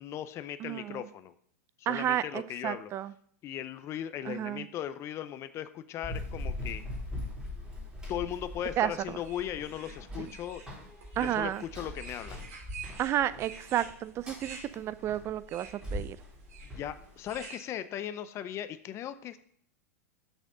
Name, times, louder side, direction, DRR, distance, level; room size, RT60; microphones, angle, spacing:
voice 1, 0.0-1.3 1.9-2.9 3.4-6.8 8.1-10.6 11.2-12.4 16.6-19.4, left 10 dB, 35° left, 12 dB, 0.6 m, -38 dB
voice 2, 0.6-1.0 1.9-3.1 4.2-4.7 8.8-9.2 10.2-10.3 11.2-11.6 13.0-16.2, right 12 dB, 30° right, 16 dB, 0.4 m, -32 dB
Run, 6.0-17.4, left 1 dB, 10° right, 3.4 m, -41 dB
sound 1, 9.2-17.6, right 5 dB, 70° right, 2.6 m, -49 dB
6.5 x 6.4 x 5.1 m, 0.63 s
hypercardioid pair, 110°, 8 cm